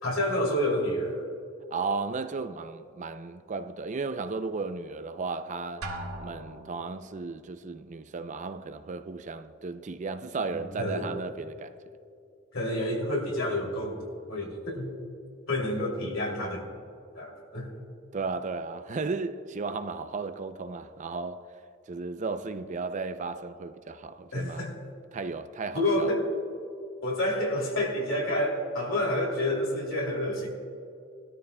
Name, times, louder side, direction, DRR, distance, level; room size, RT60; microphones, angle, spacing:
voice 1, 0.0-1.2 10.5-11.1 12.5-14.0 14.3-14.9 15.5-16.6 17.1-17.7 24.3-24.7 25.7-26.3 27.0-30.5, left 1 dB, 70° left, 2.8 m, -29 dB
voice 2, 1.7-5.9 6.2-11.8 18.1-21.5 21.9-24.7 25.1-26.1, right 4 dB, 35° right, 0.4 m, -34 dB
Drum, 5.8-7.0, right 1 dB, 90° right, 1.5 m, -38 dB
20.0 x 13.0 x 2.2 m
head